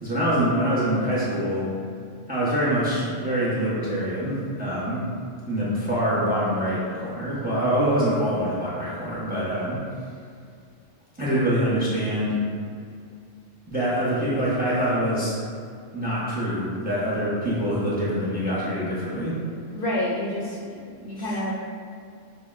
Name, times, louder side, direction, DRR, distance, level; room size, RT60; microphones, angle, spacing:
voice 1, 0.0-1.7 2.3-5.1 5.5-9.8 11.2-12.4 13.7-15.3 15.9-19.4 21.2-21.3, equal, 10° right, -8 dB, 0.6 m, -25 dB
voice 2, 19.7-21.5, left 1 dB, 55° left, -6 dB, 0.7 m, -28 dB
6.2 x 2.1 x 2.4 m, 2.3 s
omnidirectional pair, 1.2 m